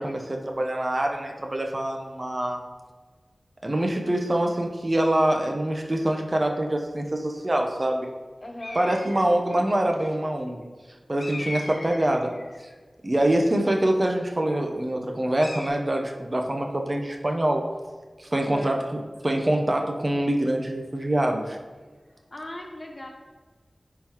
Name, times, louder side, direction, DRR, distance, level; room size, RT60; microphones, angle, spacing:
voice 1, 0.0-2.6 3.6-8.1 8.7-10.6 11.1-12.4 13.0-17.7 18.2-18.8 19.2-21.6, right 1 dB, 40° right, 2 dB, 0.8 m, -25 dB
voice 2, 8.4-9.3 18.4-18.7 22.3-23.1, left 1 dB, 45° left, 1 dB, 1.2 m, -38 dB
sound 1, 8.6-9.4 11.2-12.7 15.4-15.7, left 2 dB, 85° left, 0.9 m, -38 dB
9.9 x 3.9 x 3.0 m, 1.4 s
wide cardioid pair, 45°, 0 cm